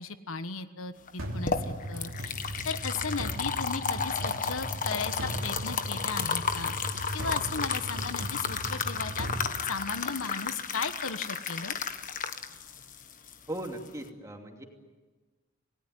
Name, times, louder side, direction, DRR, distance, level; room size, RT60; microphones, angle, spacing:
voice 1, 0.0-2.3 2.6-6.7 7.1-9.3 9.6-11.7, left 4 dB, 80° left, 11 dB, 1.3 m, -36 dB
sound 1, 1.1-14.1, left 5 dB, 40° left, 1.4 m, -33 dB
sound 2, 1.2-10.4, equal, 80° right, 2.9 m, -38 dB
voice 2, 13.5-14.6, right 1 dB, 15° right, 3 dB, 2.7 m, -38 dB
28.0 x 18.5 x 9.6 m, 1.3 s
head